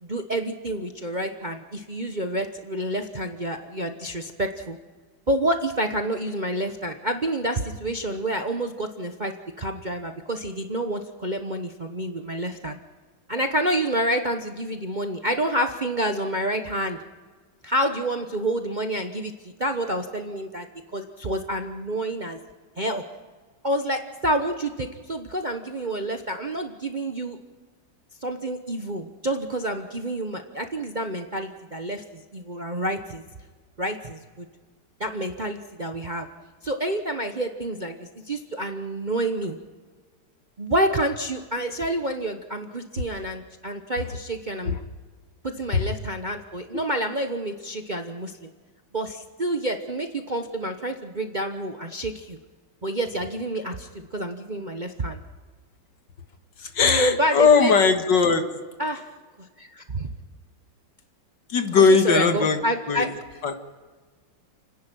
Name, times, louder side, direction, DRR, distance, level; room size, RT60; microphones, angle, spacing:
voice 1, 0.0-4.8 5.3-12.8 13.3-17.0 17.6-20.7 20.9-22.4 22.8-23.0 23.6-27.4 28.2-33.2 33.8-34.5 35.0-36.3 36.6-39.6 40.6-44.8 45.4-48.5 48.9-52.4 52.8-55.2 56.8-57.7 58.8-59.1 59.6-60.1 61.8-63.1, right 1 dB, 30° right, 6 dB, 0.9 m, -28 dB
voice 2, 56.6-58.4 61.5-62.6 62.9-63.1 63.4-63.5, left 5 dB, 65° left, 7 dB, 2.3 m, -19 dB
30.0 x 10.5 x 9.2 m, 1.4 s
omnidirectional pair, 2.1 m